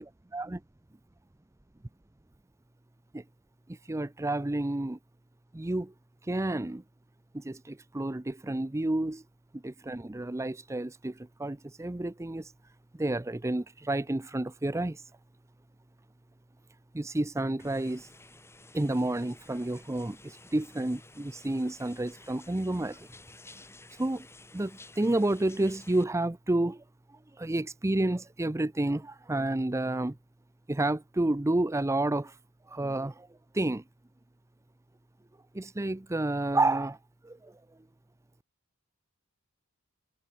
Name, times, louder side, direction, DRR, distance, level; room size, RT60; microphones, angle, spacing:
voice 1, 3.7-5.0 5.5-5.9 6.3-6.8 7.3-9.2 9.5-12.5 12.9-15.0 16.9-18.1 18.7-23.1 24.0-24.3 24.5-26.8 27.4-30.2 30.7-32.3 32.7-33.3 33.5-33.8 35.5-37.0 37.2-37.6, right 2 dB, 15° right, 0.5 m, -30 dB
sound 1, 17.6-26.0, left 2 dB, 10° left, 2.1 m, -53 dB
head